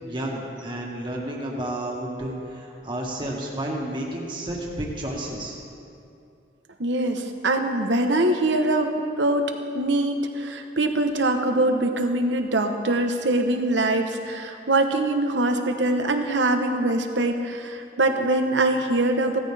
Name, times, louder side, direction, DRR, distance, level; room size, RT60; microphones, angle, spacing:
voice 1, 0.0-5.6, right 1 dB, 25° right, -2 dB, 1.8 m, -31 dB
voice 2, 6.8-19.4, right 2 dB, 90° right, 5 dB, 1.1 m, -23 dB
17.0 x 13.5 x 3.5 m, 2.6 s
head